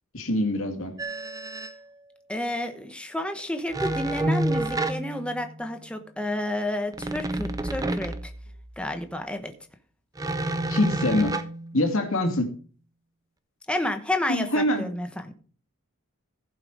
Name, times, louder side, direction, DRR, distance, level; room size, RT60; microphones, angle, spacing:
voice 1, 0.1-1.0 10.7-11.4 11.7-12.5 14.3-14.9, left 1 dB, 65° left, 4 dB, 2.3 m, -24 dB
sound 1, 1.0-1.8 3.7-5.7 6.9-8.7 10.2-12.1, right 1 dB, 15° right, 0.6 m, -29 dB
voice 2, 2.3-8.3 8.8-9.5 13.7-15.3, left 1 dB, 5° left, 6 dB, 1.0 m, -30 dB
15.5 x 5.8 x 4.9 m, 0.42 s
head